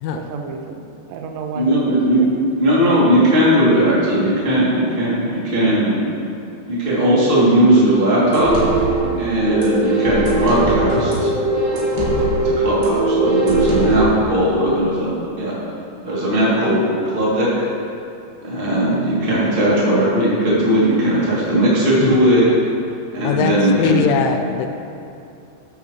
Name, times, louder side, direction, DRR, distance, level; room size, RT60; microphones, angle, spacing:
voice 1, 0.1-2.3 18.6-18.7, right 5 dB, 75° right, 3 dB, 2.7 m, -32 dB
voice 2, 1.5-2.2 2.5-6.0 6.7-8.5 9.2-11.3 11.6-15.1 15.4-15.6 16.0-16.8 17.1-17.5 18.4-22.5 23.1-24.0, right 1 dB, 30° right, -8 dB, 0.9 m, -17 dB
sound 1, 8.3-14.0, right 2 dB, 60° right, 3.0 m, -19 dB
voice 3, 23.2-24.7, left 6 dB, 85° left, 6 dB, 3.0 m, -20 dB
13.0 x 9.4 x 3.0 m, 2.7 s
omnidirectional pair, 5.4 m